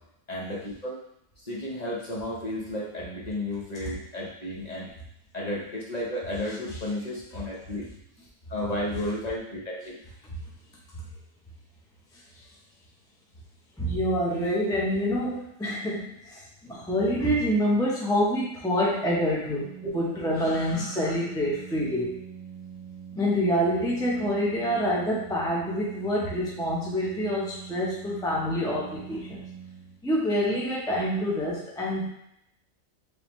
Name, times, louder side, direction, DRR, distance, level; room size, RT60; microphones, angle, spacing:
voice 1, 0.3-1.0 1.4-4.9 5.3-7.8 8.5-10.0 19.8-19.9, left 1 dB, 35° left, -5 dB, 0.9 m, -33 dB
voice 2, 13.8-22.2 23.1-29.4 30.0-32.1, equal, 5° left, -5 dB, 0.3 m, -27 dB
Organ, 19.5-30.3, right 8 dB, 35° right, 1.2 m, -43 dB
3.4 x 3.3 x 3.0 m, 0.78 s
omnidirectional pair, 1.4 m